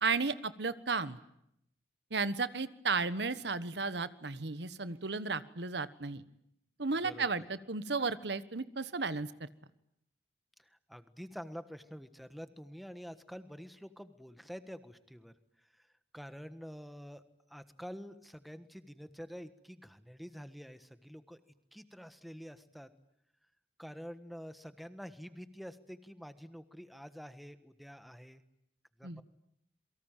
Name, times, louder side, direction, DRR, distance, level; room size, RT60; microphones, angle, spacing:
voice 1, 0.0-1.2 2.1-6.2 6.8-9.5 29.0-29.2, right 4 dB, 75° right, 14 dB, 1.3 m, -34 dB
voice 2, 7.0-7.5 10.6-15.3 15.7-15.9 16.1-17.2 17.5-21.4 21.7-22.9 23.8-28.4 29.0-29.2, equal, ahead, 10 dB, 1.4 m, -48 dB
28.0 x 23.5 x 9.1 m, 0.76 s
head